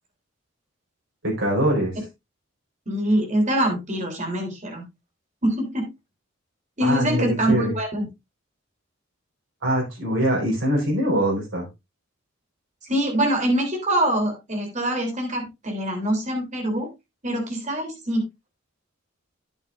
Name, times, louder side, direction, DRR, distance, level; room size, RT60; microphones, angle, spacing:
voice 1, 1.2-1.9 6.8-7.7 9.6-11.7, equal, 75° right, -2 dB, 4.7 m, -23 dB
voice 2, 2.9-4.8 5.4-5.9 6.8-8.1 12.9-16.9 17.2-18.2, right 1 dB, 40° right, 3 dB, 3.4 m, -24 dB
10.5 x 8.7 x 2.6 m, 0.22 s
head